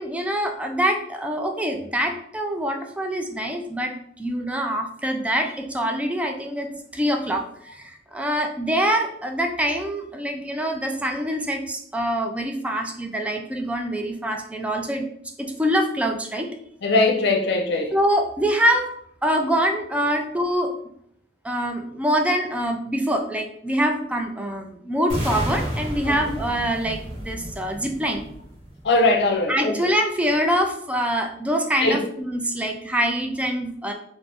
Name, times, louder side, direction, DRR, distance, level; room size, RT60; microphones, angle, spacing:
voice 1, 0.0-7.4 7.7-15.1 15.4-16.6 17.9-18.9 19.2-20.7 21.4-28.2 29.5-33.9, equal, 5° right, 3 dB, 0.3 m, -25 dB
voice 2, 16.8-17.9 26.1-26.4 28.8-29.8 31.8-32.0, left 2 dB, 65° left, 3 dB, 0.5 m, -21 dB
sound 1, 25.1-29.1, equal, 40° right, 0.9 m, -31 dB
2.5 x 2.1 x 3.4 m, 0.67 s
head